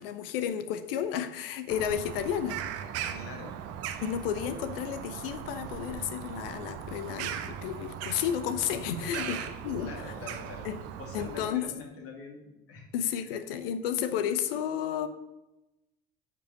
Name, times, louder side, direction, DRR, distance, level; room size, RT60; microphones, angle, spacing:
voice 1, 0.0-2.6 4.0-10.1 10.6-10.8 11.1-11.7 12.9-15.1, left 9 dB, 70° left, 11 dB, 0.9 m, -32 dB
Bird vocalization bird call bird song, 1.7-11.5, right 9 dB, 55° right, 1.0 m, -39 dB
voice 2, 3.0-3.6 9.0-9.4 9.8-10.7 11.0-12.9 13.2-13.4, left 4 dB, 50° left, 2 dB, 2.5 m, -43 dB
9.6 x 5.4 x 6.6 m, 0.95 s
figure-of-eight pair, 60°, 30 cm